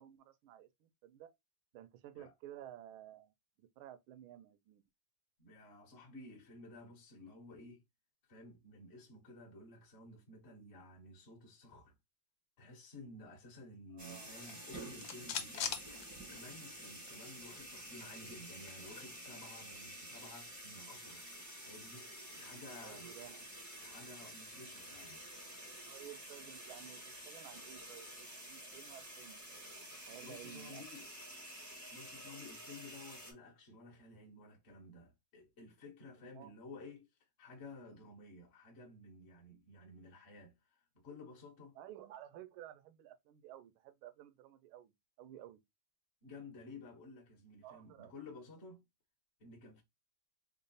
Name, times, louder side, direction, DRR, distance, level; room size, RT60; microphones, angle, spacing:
voice 1, 0.0-1.3 1.7-3.3 3.6-4.8 13.9-14.3 22.8-23.5 25.9-29.6 30.1-30.9 36.2-36.5 41.7-45.6 47.6-48.1, right 12 dB, 90° right, 1.5 m, -54 dB
voice 2, 5.4-7.8 8.3-11.9 12.6-15.8 16.2-21.2 21.6-22.1 22.3-23.1 23.8-25.3 30.2-31.0 31.9-37.1 37.4-41.8 46.2-48.8 49.4-49.8, left 2 dB, 45° left, 0.9 m, -54 dB
sound 1, 14.0-33.3, right 1 dB, 20° right, 0.4 m, -50 dB
sound 2, 14.3-16.8 17.1-17.2 17.5-19.4, left 8 dB, 75° left, 1.3 m, -44 dB
3.8 x 2.0 x 3.8 m
omnidirectional pair, 2.2 m